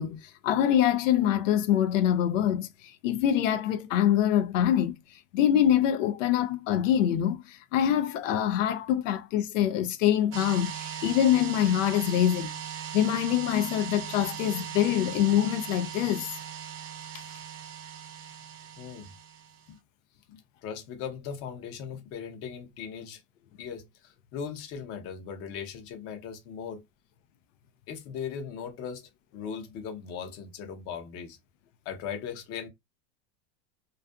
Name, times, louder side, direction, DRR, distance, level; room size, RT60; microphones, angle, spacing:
voice 1, 0.0-12.5 12.9-16.3, left 10 dB, 90° left, 0.5 m, -25 dB
sound 1, 10.3-19.7, right 9 dB, 40° right, 0.6 m, -39 dB
voice 2, 18.8-19.1 19.7-19.8 20.3-23.2 23.6-26.8 27.9-31.4 31.8-32.7, left 7 dB, 40° left, 0.7 m, -39 dB
2.5 x 2.4 x 2.3 m
supercardioid pair, 140°, 37 cm